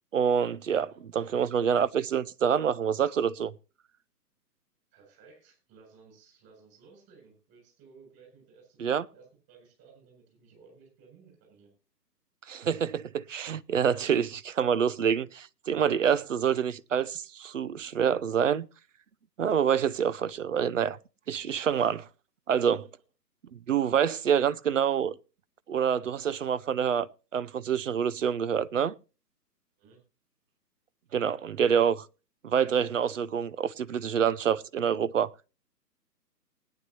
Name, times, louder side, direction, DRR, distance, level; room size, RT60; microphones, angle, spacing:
voice 1, 0.1-3.5 8.8-9.0 12.5-18.7 19.4-21.0 21.3-22.1 22.5-22.9 23.5-25.1 25.7-28.9 31.1-32.1 32.4-35.3, right 8 dB, 50° right, 0.6 m, -27 dB
voice 2, 0.9-1.3 4.9-11.7 29.8-30.0, right 5 dB, 20° right, 7.5 m, -57 dB
20.0 x 9.8 x 2.9 m
figure-of-eight pair, 135°, 50 cm